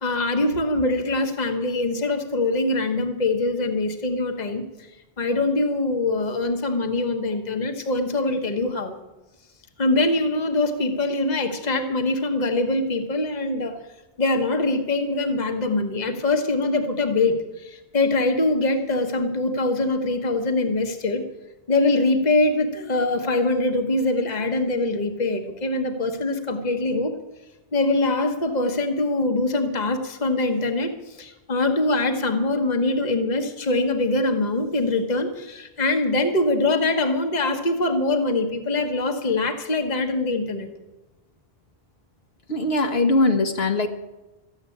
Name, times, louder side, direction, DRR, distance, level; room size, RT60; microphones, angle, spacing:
voice 1, 0.0-4.6 5.2-8.9 9.8-13.8 14.2-21.2 21.7-27.2 27.7-30.9 31.2-40.7, left 2 dB, 40° left, 6 dB, 1.4 m, -23 dB
voice 2, 42.5-43.9, left 2 dB, 65° left, 4 dB, 1.5 m, -21 dB
14.0 x 8.0 x 9.8 m, 1.1 s
omnidirectional pair, 1.1 m